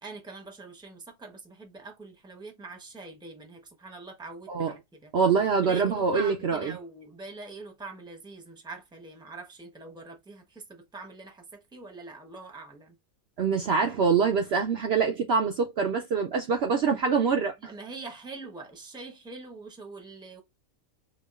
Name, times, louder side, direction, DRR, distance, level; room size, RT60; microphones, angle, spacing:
voice 1, 0.0-5.1 5.6-13.0 17.6-20.4, right 3 dB, 5° right, 0.7 m, -44 dB
voice 2, 5.1-6.7 13.4-17.5, right 5 dB, 65° right, 0.7 m, -25 dB
4.9 x 2.4 x 2.4 m
omnidirectional pair, 1.4 m